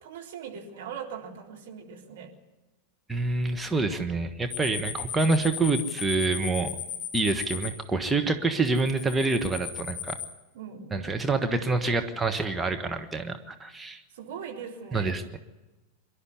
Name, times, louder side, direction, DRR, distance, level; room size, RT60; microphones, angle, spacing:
voice 1, 0.0-2.3 10.5-11.2 14.1-15.1, right 7 dB, 55° right, 0 dB, 4.0 m, -40 dB
voice 2, 3.1-6.7 7.1-10.2 10.9-14.0 14.9-15.2, right 3 dB, 10° right, 5 dB, 1.5 m, -27 dB
Night Cricket (single), 4.5-7.7 8.6-10.3, left 9 dB, 25° left, 7.4 m, -35 dB
24.0 x 12.0 x 9.6 m, 1.1 s
figure-of-eight pair, 90°, 0 cm